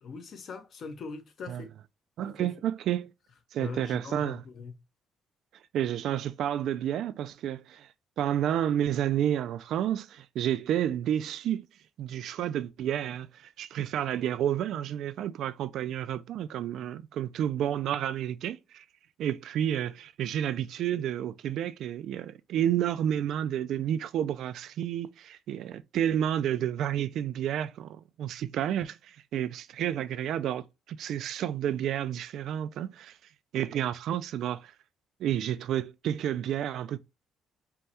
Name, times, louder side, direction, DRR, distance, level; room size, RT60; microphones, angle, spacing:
voice 1, 0.0-1.7 2.2-2.5 3.6-4.8, left 4 dB, 55° left, 0.9 m, -41 dB
voice 2, 2.2-3.1 3.5-4.4 5.7-7.9 8.2-11.7 12.0-18.8 19.2-33.2 33.5-34.7 35.2-37.0, right 10 dB, 75° right, 0.3 m, -30 dB
5.3 x 2.2 x 2.8 m
cardioid pair, 100°, 0 cm